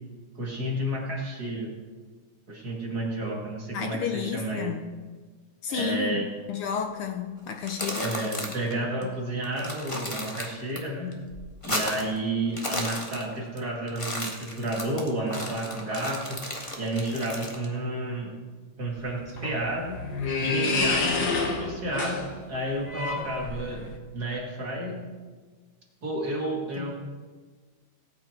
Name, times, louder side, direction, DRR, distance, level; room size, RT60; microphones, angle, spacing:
voice 1, 0.4-1.7 2.5-4.7 5.7-6.3 7.9-11.2 11.6-16.4 16.8-18.3 18.8-20.0 20.4-23.9 24.1-25.0 26.0-26.9, right 1 dB, 35° right, -2 dB, 2.4 m, -31 dB
voice 2, 3.7-4.8 5.6-8.2 9.0-9.1 26.8-26.9, left 7 dB, 75° left, 5 dB, 1.2 m, -32 dB
sound 1, 7.5-8.7 9.0-9.1 9.4-10.8 11.1-12.2 12.5-13.6 13.9-17.6, left 1 dB, 25° left, 0.7 m, -34 dB
sound 2, 19.0-24.0, left 3 dB, 45° left, 1.4 m, -29 dB
17.5 x 8.8 x 4.5 m, 1.4 s
omnidirectional pair, 3.3 m